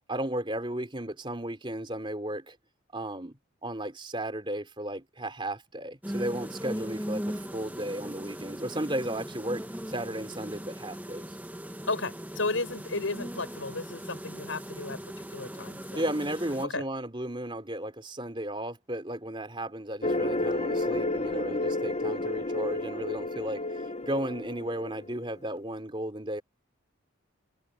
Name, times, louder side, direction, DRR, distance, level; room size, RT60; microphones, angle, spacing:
voice 1, 0.1-2.5 2.9-3.4 3.6-11.3 15.9-26.4, right 1 dB, 25° right, 3.4 m, -34 dB
sound 1, 6.0-16.6, equal, 10° right, 1.0 m, -39 dB
voice 2, 11.9-16.0 16.6-16.8, left 3 dB, 75° left, 5.7 m, -34 dB
sound 2, 20.0-25.3, left 2 dB, 35° left, 1.0 m, -31 dB
head